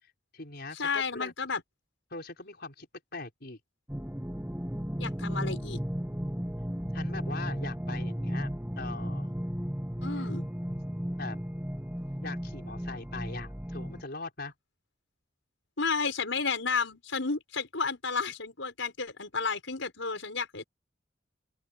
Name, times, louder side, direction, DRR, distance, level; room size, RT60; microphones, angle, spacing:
voice 1, 0.0-1.3 2.1-3.6 6.9-9.3 11.2-11.4 12.1-14.5, left 3 dB, 55° left, 5.3 m, -41 dB
voice 2, 0.8-1.6 5.0-5.8 10.0-10.5 15.8-20.6, left 5 dB, 80° left, 5.3 m, -32 dB
sound 1, 3.9-14.0, equal, 10° right, 1.7 m, -34 dB
open air
head